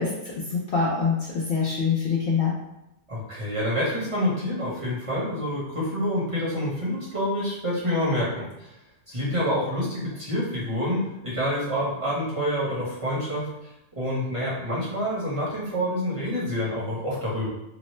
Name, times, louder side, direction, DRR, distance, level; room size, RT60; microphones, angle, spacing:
voice 1, 0.0-2.6, left 5 dB, 60° left, -4 dB, 0.6 m, -25 dB
voice 2, 3.1-8.7 9.1-13.5 13.9-17.5, equal, 30° right, -9 dB, 0.9 m, -27 dB
2.9 x 2.0 x 3.0 m, 0.89 s
omnidirectional pair, 1.3 m